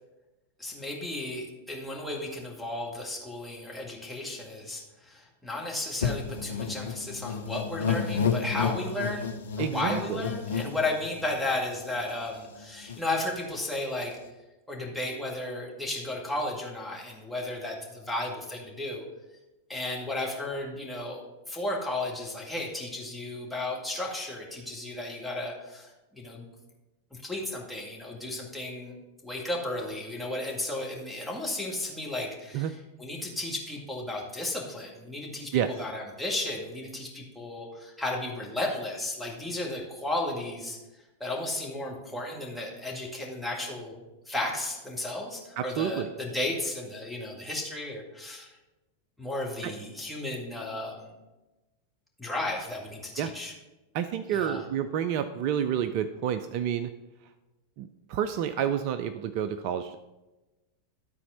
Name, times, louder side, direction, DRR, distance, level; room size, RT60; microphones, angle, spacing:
voice 1, 0.6-9.3 9.6-14.1 14.7-19.0 19.7-26.5 27.1-29.0 29.2-40.8 41.2-44.0 44.3-48.5 49.2-51.1 52.2-53.5 54.3-54.6, left 2 dB, ahead, -3 dB, 1.9 m, -34 dB
sound 1, 6.0-11.6 12.1-12.2 12.4-13.0, left 6 dB, 70° left, 0.7 m, -31 dB
voice 2, 9.6-10.2 32.5-32.7 35.5-35.7 45.6-46.1 49.6-49.7 53.2-53.3 53.9-56.9 57.8-60.0, right 9 dB, 45° right, 11 dB, 0.4 m, -29 dB
12.0 x 4.2 x 5.6 m, 1.1 s
figure-of-eight pair, 90°, 0 cm